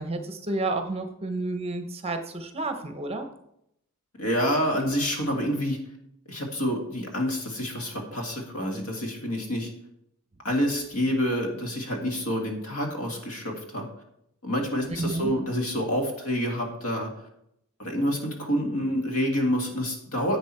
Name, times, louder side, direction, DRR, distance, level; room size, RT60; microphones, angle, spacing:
voice 1, 0.0-3.3 15.0-15.3, right 2 dB, 25° right, 7 dB, 0.9 m, -30 dB
voice 2, 4.2-5.8 6.3-9.7 10.4-13.9 14.4-17.1 17.8-20.4, equal, 80° left, 2 dB, 2.1 m, -27 dB
10.5 x 8.0 x 4.4 m, 0.78 s
head